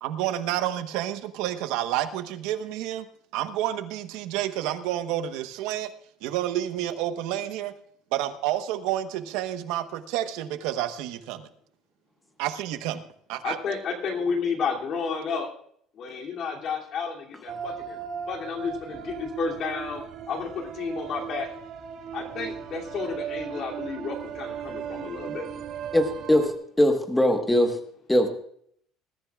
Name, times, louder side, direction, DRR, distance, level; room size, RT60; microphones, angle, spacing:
voice 1, 0.0-3.1 3.3-5.9 6.2-7.7 8.1-11.5 12.4-13.0 13.3-13.6, right 12 dB, 75° right, 9 dB, 1.0 m, -29 dB
voice 2, 13.4-15.5 16.0-20.0 20.3-21.5 22.1-25.5, left 5 dB, 40° left, 0 dB, 2.7 m, -31 dB
sound 1, 17.5-26.5, right 8 dB, 45° right, 2.1 m, -37 dB
voice 3, 25.9-26.5 26.8-27.8 28.1-28.3, left 1 dB, 5° left, 5 dB, 1.3 m, -20 dB
20.5 x 13.5 x 2.4 m, 0.64 s
cardioid pair, 165°, 0 cm